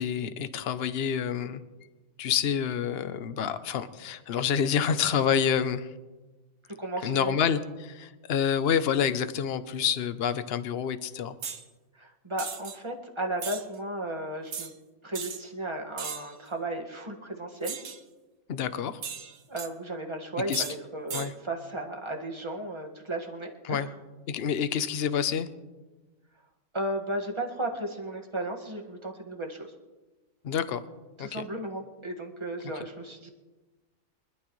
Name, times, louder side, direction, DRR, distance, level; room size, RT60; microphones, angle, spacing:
voice 1, 0.0-1.6 2.2-5.9 7.0-11.3 18.5-19.0 20.5-20.6 21.1-21.3 23.6-23.9 24.3-25.5 30.4-30.8 31.2-31.4, left 8 dB, 55° left, 12 dB, 0.9 m, -28 dB
voice 2, 6.8-7.4 11.9-14.7 15.0-17.7 19.5-23.9 26.7-29.7 31.2-33.3, right 1 dB, 20° right, 0 dB, 1.8 m, -35 dB
sound 1, 11.4-11.6 12.4-12.8 13.4-13.6 14.5-14.7 15.1-15.4 16.0-16.3 17.6-18.0 19.0-19.7 20.5-20.8 21.1-21.3, right 7 dB, 65° right, 1.4 m, -37 dB
25.0 x 12.0 x 3.2 m, 1.2 s
omnidirectional pair, 1.4 m